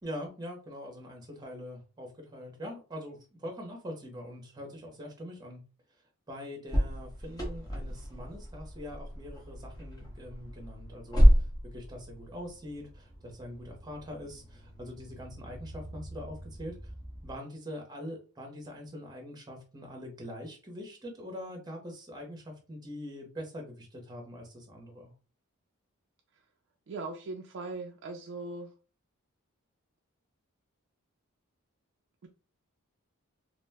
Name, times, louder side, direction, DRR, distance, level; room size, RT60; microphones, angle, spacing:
voice 1, 0.0-5.6 6.3-16.9 17.2-25.1, equal, 20° right, 1 dB, 0.7 m, -43 dB
sound 1, 6.7-17.4, equal, 20° left, 0.6 m, -30 dB
voice 2, 26.9-28.7 32.2-32.3, right 3 dB, 55° right, 3 dB, 0.3 m, -39 dB
2.4 x 2.1 x 3.3 m, 0.35 s
head